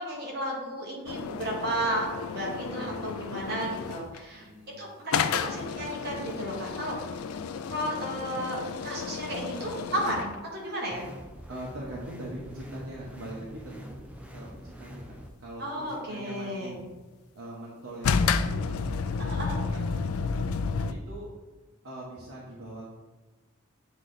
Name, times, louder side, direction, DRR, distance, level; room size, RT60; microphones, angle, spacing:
voice 1, 0.0-4.5 4.8-7.0 7.7-11.1 15.6-16.7 19.2-19.6, right 1 dB, 45° right, -3 dB, 1.7 m, -33 dB
sound 1, 1.1-4.2 5.1-10.4 18.0-20.9, left 5 dB, 85° left, 0.4 m, -31 dB
voice 2, 2.7-3.4 4.3-4.8 11.5-16.9 17.3-19.8 20.9-21.3 21.8-22.9, right 1 dB, 75° right, -5 dB, 1.1 m, -43 dB
sound 2, 10.9-15.3, equal, 5° right, 0.4 m, -45 dB
8.2 x 3.3 x 3.9 m, 1.2 s
head